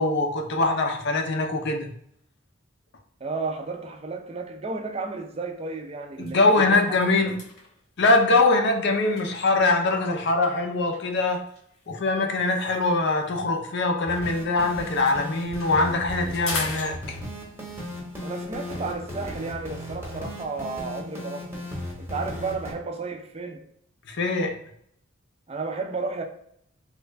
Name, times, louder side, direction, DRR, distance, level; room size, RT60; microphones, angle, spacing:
voice 1, 0.0-1.9 6.2-7.4 8.0-11.4 11.9-17.2 24.1-24.6, left 3 dB, 55° left, 0.5 m, -23 dB
voice 2, 3.2-6.8 18.2-21.7 22.0-23.6 25.5-26.2, right 3 dB, 30° right, 0.4 m, -33 dB
sound 1, 5.0-5.2 5.6-5.8 6.1-10.1 10.9-14.5 14.8-17.6, left 3 dB, 80° left, 1.0 m, -40 dB
sound 2, 14.1-22.7, left 1 dB, 10° right, 0.9 m, -36 dB
3.2 x 2.4 x 3.2 m
head